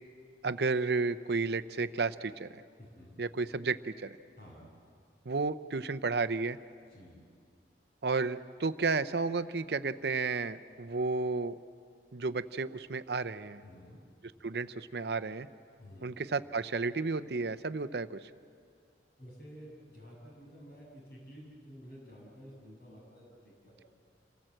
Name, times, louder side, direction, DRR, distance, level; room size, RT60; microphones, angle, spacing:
voice 1, 0.4-2.6 3.2-4.1 5.3-6.6 8.0-11.5 12.1-13.6 14.4-15.5 16.0-18.2, right 4 dB, 65° right, 13 dB, 0.7 m, -32 dB
voice 2, 2.8-3.1 4.4-4.7 6.9-7.2 13.6-14.0 15.8-16.1 19.2-23.8, equal, 60° left, -2 dB, 7.0 m, -51 dB
28.0 x 18.0 x 7.8 m, 2.2 s
head